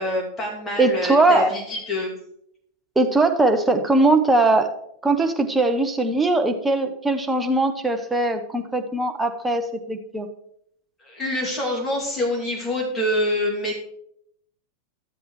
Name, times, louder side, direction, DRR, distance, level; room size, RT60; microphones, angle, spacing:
voice 1, 0.0-2.1 11.0-13.7, left 1 dB, 20° left, -2 dB, 2.6 m, -26 dB
voice 2, 0.8-1.5 3.0-4.7 5.0-10.3, right 2 dB, 10° right, 5 dB, 0.9 m, -20 dB
12.5 x 7.7 x 3.2 m, 0.74 s
figure-of-eight pair, 90°, 0 cm